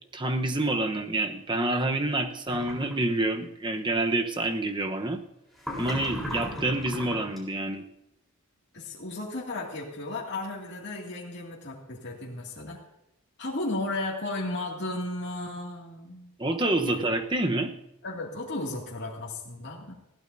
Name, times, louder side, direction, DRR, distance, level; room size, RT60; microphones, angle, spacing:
voice 1, 0.1-5.2 5.8-7.9 16.4-17.7, right 2 dB, 20° right, 5 dB, 1.0 m, -27 dB
sound 1, 2.5-3.0 5.6-7.4, left 1 dB, ahead, 4.0 m, -36 dB
voice 2, 8.7-12.8 13.4-16.4 16.8-17.0 18.0-19.9, left 2 dB, 55° left, -3 dB, 2.3 m, -34 dB
20.5 x 15.5 x 2.7 m, 0.88 s
head